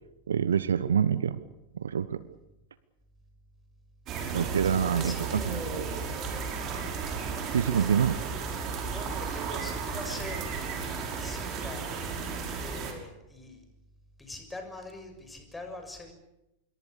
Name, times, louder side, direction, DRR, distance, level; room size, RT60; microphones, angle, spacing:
voice 1, 0.3-1.4 1.7-2.2 4.3-5.8 7.5-8.2, right 8 dB, 65° right, 16 dB, 1.2 m, -26 dB
sound 1, 4.1-12.9, right 5 dB, 35° right, 6.0 m, -34 dB
voice 2, 4.7-6.1 7.8-7.9 8.9-11.9 12.5-13.6 14.2-16.1, left 2 dB, 10° left, 5 dB, 6.6 m, -43 dB
26.5 x 22.5 x 6.9 m, 0.90 s
figure-of-eight pair, 90°, 0 cm